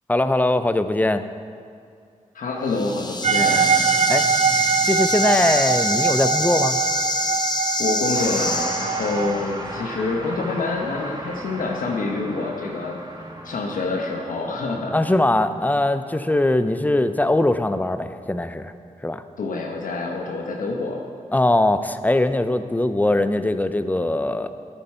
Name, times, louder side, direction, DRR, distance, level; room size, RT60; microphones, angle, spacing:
voice 1, 0.1-1.2 4.1-4.2 4.8-6.8 14.9-18.7 19.0-19.2 21.3-24.5, left 1 dB, 10° left, 11 dB, 0.5 m, -21 dB
voice 2, 2.3-3.8 7.8-14.9 19.4-21.0, left 3 dB, 85° left, 0 dB, 1.0 m, -27 dB
sound 1, 2.7-9.4, left 2 dB, 30° left, 1.0 m, -26 dB
sound 2, 3.2-9.3, right 7 dB, 55° right, 0.5 m, -23 dB
sound 3, 8.1-17.6, right 1 dB, 30° right, 1.6 m, -37 dB
11.0 x 9.0 x 4.4 m, 2.4 s
cardioid pair, 65°, 14 cm